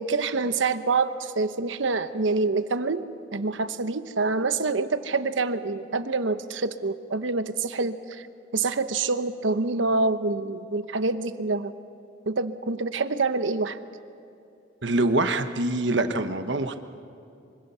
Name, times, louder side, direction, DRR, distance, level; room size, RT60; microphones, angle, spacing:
voice 1, 0.0-8.3 8.5-11.7 12.3-13.8, right 3 dB, 90° right, 11 dB, 1.0 m, -26 dB
voice 2, 14.8-16.8, right 2 dB, 70° right, 8 dB, 1.2 m, -24 dB
25.0 x 24.5 x 5.7 m, 2.6 s
head